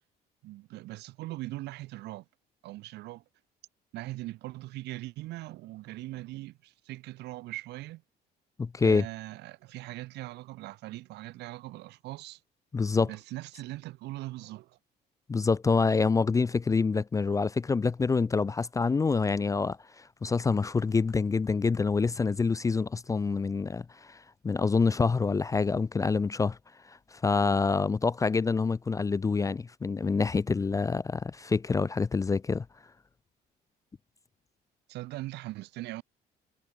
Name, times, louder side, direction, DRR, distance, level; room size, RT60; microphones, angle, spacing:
voice 1, 0.4-2.2 2.6-3.2 3.9-8.0 8.8-12.4 13.0-14.8 34.9-36.0, right 18 dB, 85° right, 4.4 m, -40 dB
voice 2, 8.6-9.0 12.7-13.1 15.3-24.2 24.4-26.6 27.1-32.6, left 4 dB, 20° left, 0.5 m, -26 dB
cardioid pair, 110°, 17 cm